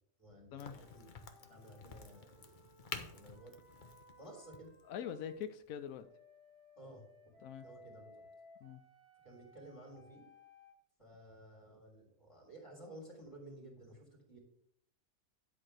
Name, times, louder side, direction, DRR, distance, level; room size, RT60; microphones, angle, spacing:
voice 1, 0.2-1.1 1.4-2.7 3.1-3.5 4.2-4.7 6.7-7.0 7.6-8.3 9.2-10.2 11.0-14.4, right 1 dB, 20° left, -2 dB, 3.3 m, -54 dB
Crack, 0.6-6.0, left 5 dB, 40° left, 0.9 m, -50 dB
sound 1, 0.8-5.4 6.0-10.8, left 2 dB, 55° right, 3.0 m, -62 dB
voice 2, 4.9-6.1 7.4-7.7 8.6-8.8, left 9 dB, 90° left, 10 dB, 1.1 m, -43 dB
10.5 x 4.4 x 6.5 m, 0.70 s
omnidirectional pair, 1.4 m